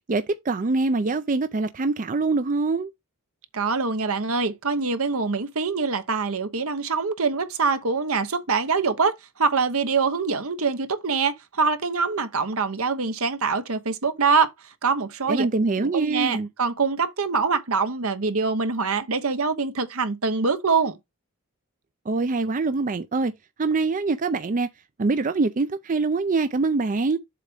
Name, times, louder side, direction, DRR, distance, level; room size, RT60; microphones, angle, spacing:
voice 1, 0.1-2.9 15.3-16.5 22.1-23.3 23.6-24.7 25.0-27.2, right 3 dB, 35° right, 0.5 m, -24 dB
voice 2, 3.5-14.5 14.8-15.5 15.8-21.0, right 4 dB, 75° right, 1.1 m, -24 dB
7.5 x 3.5 x 5.3 m
head